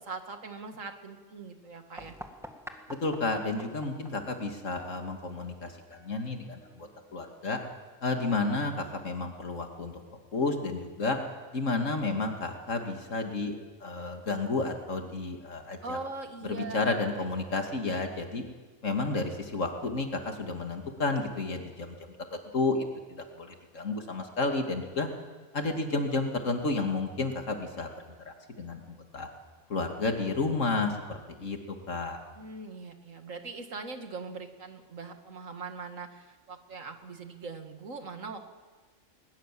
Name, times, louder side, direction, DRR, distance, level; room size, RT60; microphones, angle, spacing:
voice 1, 0.0-2.1 15.8-17.4 32.4-38.4, right 4 dB, 90° right, 6 dB, 2.4 m, -41 dB
sound 1, 2.0-7.5, equal, ahead, 1.8 m, -50 dB
voice 2, 2.9-7.6 8.0-10.0 10.3-11.2 11.5-13.6 13.8-16.0 16.5-18.4 18.8-22.0 22.3-25.1 25.5-29.3 29.7-32.2, left 3 dB, 80° left, 4 dB, 2.7 m, -31 dB
21.0 x 21.0 x 7.6 m, 1.4 s
omnidirectional pair, 1.3 m